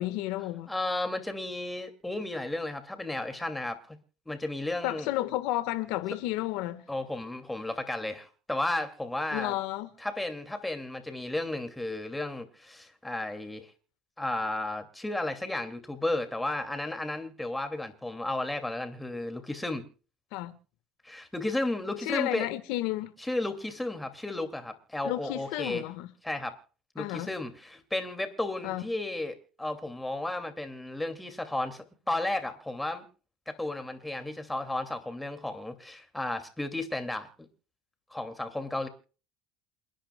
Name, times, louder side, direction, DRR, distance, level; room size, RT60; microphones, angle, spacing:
voice 1, 0.0-0.7 4.8-6.8 9.3-9.9 20.3-20.5 22.0-23.1 25.0-26.1 27.0-27.3 28.6-28.8, left 16 dB, 75° left, 1.6 m, -32 dB
voice 2, 0.7-4.0 4.3-5.1 6.9-9.5 10.0-13.7 14.2-19.8 21.0-22.5 23.2-25.8 26.2-26.6 26.9-33.0 33.5-37.5 38.1-38.9, left 2 dB, 10° left, 2.6 m, -33 dB
28.5 x 10.0 x 2.4 m
supercardioid pair, 100°, 0 cm